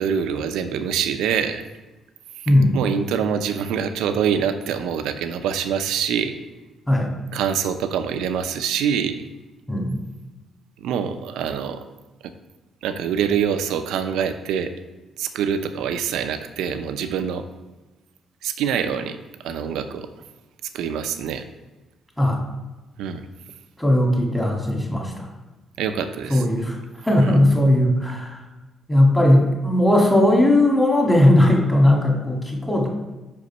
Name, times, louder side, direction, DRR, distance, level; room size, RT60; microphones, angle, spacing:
voice 1, 0.0-1.6 2.7-6.3 7.3-9.2 10.8-11.8 12.8-14.7 15.2-17.4 18.4-19.2 19.4-20.1 20.7-21.4 23.0-23.2 25.8-26.4 27.2-27.3, right 7 dB, 90° right, 9 dB, 0.5 m, -25 dB
voice 2, 9.7-10.0 22.2-22.4 23.8-25.3 26.3-26.8 27.0-28.4 28.9-32.9, left 1 dB, 10° left, -1 dB, 1.7 m, -18 dB
5.3 x 5.0 x 5.4 m, 1.1 s
cardioid pair, 90°, 0 cm